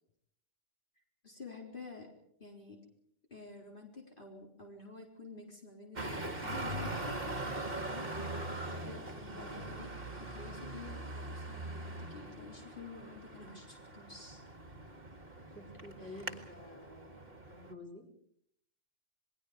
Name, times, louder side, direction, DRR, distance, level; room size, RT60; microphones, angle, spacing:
voice 1, 1.2-2.1 2.4-2.8 3.3-9.9 10.2-14.4 16.0-16.3, left 3 dB, 45° left, 0 dB, 4.3 m, -50 dB
Traffic noise roadway noise, 6.0-17.7, right 2 dB, 50° right, 2.2 m, -42 dB
voice 2, 9.3-9.8 15.5-18.1, left 1 dB, 10° left, 1 dB, 5.2 m, -50 dB
28.0 x 21.5 x 5.0 m, 0.70 s
omnidirectional pair, 1.2 m